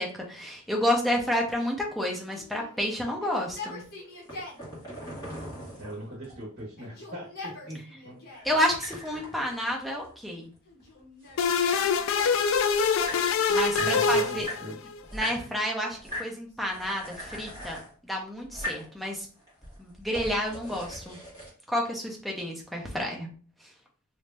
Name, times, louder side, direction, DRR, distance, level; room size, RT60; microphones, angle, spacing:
voice 1, 0.0-3.8 8.4-10.5 13.5-14.5 15.1-17.8 18.0-19.3 19.8-21.2 21.7-23.3, equal, ahead, -1 dB, 0.7 m, -30 dB
Yell, 2.3-4.7 5.5-6.3 6.7-8.6 9.3-10.0 10.7-12.5 13.8-14.7 15.5-17.3, left 3 dB, 50° left, 1.3 m, -46 dB
sound 1, 4.1-6.6 8.4-10.5 10.8-12.0 12.6-12.7 12.9-14.0 14.4-15.4 15.9-16.3 16.7-17.9 18.4-18.9 19.4-21.5, left 1 dB, 15° left, 1.7 m, -40 dB
voice 2, 5.7-8.6 13.8-14.8, equal, 45° right, -6 dB, 1.3 m, -41 dB
sound 2, 11.4-15.0, left 5 dB, 65° left, 0.3 m, -24 dB
3.1 x 2.7 x 3.3 m, 0.40 s
head